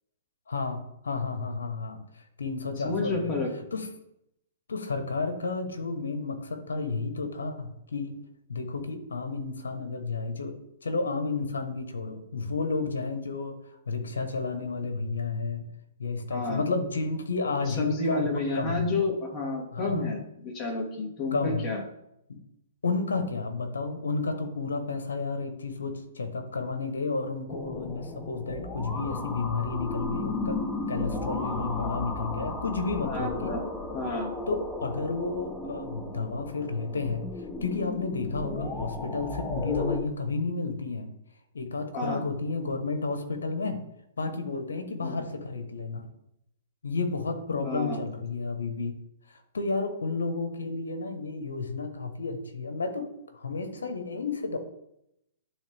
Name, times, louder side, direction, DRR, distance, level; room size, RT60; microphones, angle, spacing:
voice 1, 0.5-2.0 2.4-3.3 3.7-3.9 4.7-8.2 8.5-10.5 10.8-13.6 13.9-15.7 16.0-18.9 19.7-20.0 21.3-21.7 22.3-22.4 22.8-30.6 30.9-33.6 34.5-37.3 37.6-41.1 41.5-43.8 44.2-46.0 46.8-48.9 49.3-53.1 53.3-54.6, left 4 dB, 90° left, 8 dB, 1.2 m, -31 dB
voice 2, 2.8-3.5 16.3-16.6 17.7-21.8 33.1-33.6 33.9-34.3 41.9-42.2 45.0-45.2 47.6-48.0, left 3 dB, 25° left, 0 dB, 2.2 m, -30 dB
sound 1, 27.5-40.0, left 2 dB, 5° left, 0.9 m, -35 dB
11.0 x 3.8 x 3.5 m, 0.80 s
hypercardioid pair, 135°, 0 cm